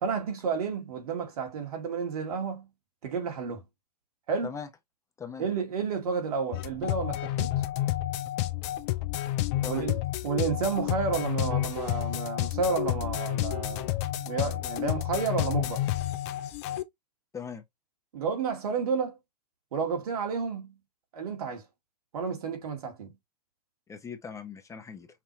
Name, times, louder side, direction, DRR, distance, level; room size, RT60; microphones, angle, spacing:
voice 1, 0.0-2.7 3.0-3.6 4.3-4.5 5.4-7.5 9.6-15.8 18.1-19.2 19.7-20.7 21.1-21.6 22.1-23.1, right 5 dB, 65° right, 2.1 m, -31 dB
sound 1, 6.5-16.8, left 14 dB, 45° left, 0.7 m, -30 dB
voice 2, 17.3-17.6 23.9-25.1, left 6 dB, 15° left, 0.9 m, -39 dB
5.8 x 2.8 x 3.1 m
hypercardioid pair, 105°, 21 cm